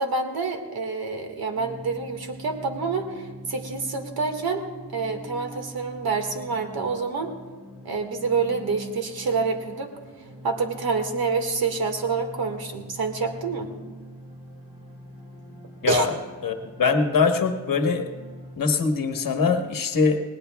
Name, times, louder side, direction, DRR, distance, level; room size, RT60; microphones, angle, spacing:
voice 1, 0.0-4.6 4.9-7.3 7.8-9.9 10.4-13.7 15.9-16.1, right 4 dB, 50° right, 5 dB, 1.9 m, -27 dB
sound 1, 1.5-18.6, right 1 dB, 15° right, 4.2 m, -43 dB
voice 2, 15.8-16.2 16.4-18.1 18.6-20.2, left 4 dB, 45° left, 5 dB, 1.4 m, -22 dB
20.0 x 18.0 x 2.3 m, 1.4 s
cardioid pair, 100°, 46 cm